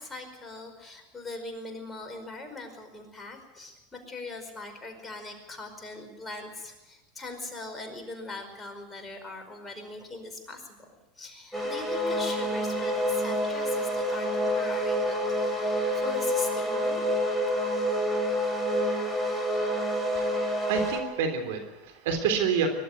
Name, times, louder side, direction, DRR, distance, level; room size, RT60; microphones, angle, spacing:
voice 1, 0.0-10.9 11.2-17.4, left 2 dB, 15° left, 4 dB, 5.0 m, -41 dB
sound 1, 11.5-21.0, equal, ahead, 5.6 m, -28 dB
voice 2, 20.1-22.7, right 6 dB, 70° right, 6 dB, 3.5 m, -28 dB
22.5 x 12.5 x 9.4 m, 1.1 s
hypercardioid pair, 95°, 0 cm